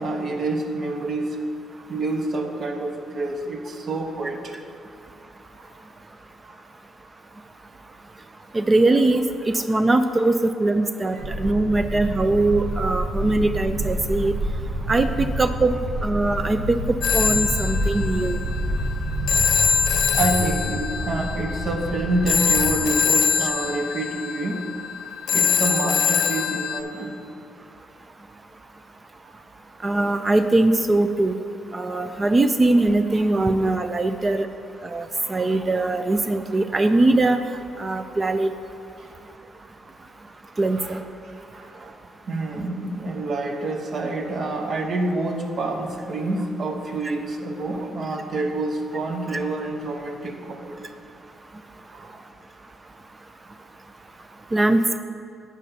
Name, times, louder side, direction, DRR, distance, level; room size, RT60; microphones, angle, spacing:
voice 1, 0.0-1.4 1.9-4.5 5.5-5.7 6.4-6.6 11.1-11.2 19.4-19.5 20.1-24.7 25.3-27.1 29.3-29.4 39.0-39.1 40.7-42.0 42.3-50.9 51.9-52.2, right 2 dB, 50° right, 4 dB, 0.9 m, -28 dB
voice 2, 8.5-9.2 9.5-14.3 14.9-18.4 23.4-23.5 29.8-31.4 31.7-34.5 34.8-37.4 37.8-38.5 40.6-41.0 54.5-54.8, right 2 dB, 25° right, 9 dB, 0.4 m, -21 dB
sound 1, 11.2-22.9, equal, 90° right, 1.6 m, -28 dB
Telephone, 17.0-26.8, left 6 dB, 75° left, 0.6 m, -23 dB
11.5 x 8.3 x 2.7 m, 2.6 s
cardioid pair, 90°, 0 cm